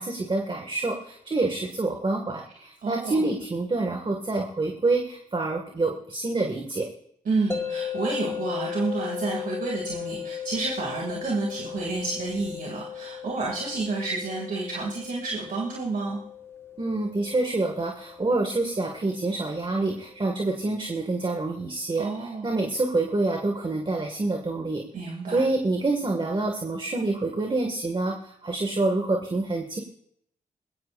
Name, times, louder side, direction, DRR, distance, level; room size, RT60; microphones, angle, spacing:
voice 1, 0.0-6.9 16.8-24.8 25.3-29.8, right 2 dB, 35° right, 1 dB, 2.0 m, -27 dB
voice 2, 2.8-3.3 7.2-16.2 22.0-22.5 24.9-25.4, right 3 dB, 75° right, -2 dB, 2.6 m, -30 dB
sound 1, 7.5-20.6, left 8 dB, 20° left, 1.8 m, -37 dB
20.5 x 17.0 x 2.6 m, 0.71 s
cardioid pair, 65°, 15 cm